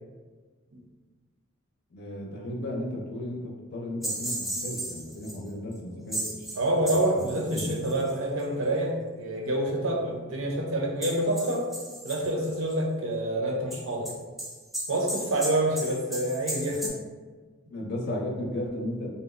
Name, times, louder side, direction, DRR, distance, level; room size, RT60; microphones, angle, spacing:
voice 1, 1.9-6.5 7.1-7.7 17.7-19.1, left 1 dB, 50° left, -1 dB, 0.5 m, -34 dB
sound 1, 4.0-5.3 5.7-5.8 6.1-8.4 11.0-12.7 13.7-16.9, right 1 dB, ahead, 0.3 m, -35 dB
voice 2, 6.6-11.7 12.0-14.1 14.9-16.9, right 1 dB, 70° right, 0 dB, 0.6 m, -27 dB
2.7 x 2.0 x 3.5 m, 1.4 s
head